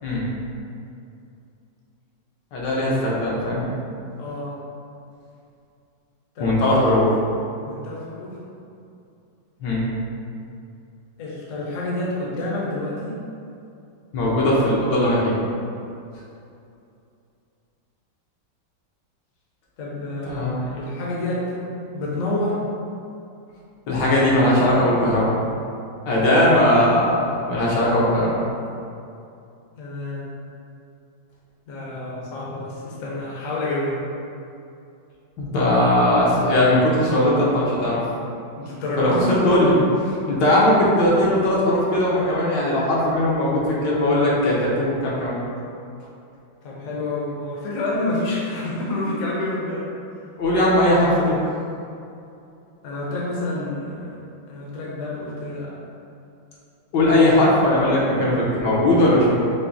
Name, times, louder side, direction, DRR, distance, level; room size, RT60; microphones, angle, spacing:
voice 1, 2.5-3.7 6.4-7.1 9.6-9.8 14.1-15.3 20.3-20.6 23.9-25.3 26.1-28.3 35.4-38.0 39.0-45.4 50.4-51.4 56.9-59.4, left 1 dB, 70° left, -6 dB, 1.4 m, -19 dB
voice 2, 4.2-4.6 6.4-6.6 7.6-8.4 11.2-13.1 19.8-21.6 21.9-22.6 29.8-30.3 31.7-34.0 38.6-39.4 46.6-49.9 52.8-54.1 54.5-55.8 56.9-57.1, left 2 dB, 55° left, -6 dB, 1.1 m, -28 dB
5.8 x 2.1 x 3.9 m, 2.6 s
omnidirectional pair, 2.0 m